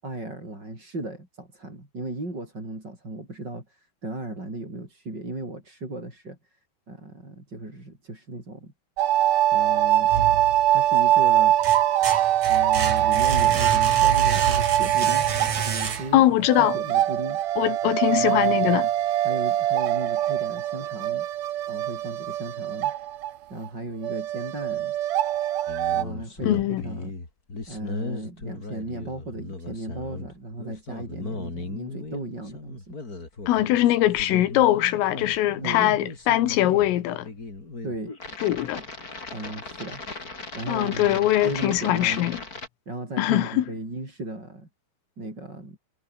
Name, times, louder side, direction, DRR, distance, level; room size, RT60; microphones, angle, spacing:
voice 1, 0.0-6.6 6.9-8.7 9.5-10.1 10.7-11.6 12.5-17.4 18.1-18.7 19.2-21.3 21.7-22.9 23.5-24.9 25.9-27.1 27.7-32.9 35.6-36.0 37.8-38.1 38.7-38.8 39.3-40.0 40.5-42.3 42.9-44.7 45.2-45.8, right 2 dB, 20° right, 8.3 m, -36 dB
sound 1, 9.0-23.3 23.6-23.7 24.0-26.0, right 12 dB, 85° right, 1.8 m, -23 dB
sound 2, 10.1-10.9 11.4-16.4, right 6 dB, 40° right, 3.6 m, -28 dB
voice 2, 16.1-16.8 17.6-18.9 26.4-26.8 33.5-37.3 38.4-38.8 40.7-42.4 43.2-43.7, left 14 dB, 85° left, 4.3 m, -22 dB
sound 3, 25.7-42.7, left 3 dB, 20° left, 3.8 m, -37 dB
omnidirectional pair, 5.7 m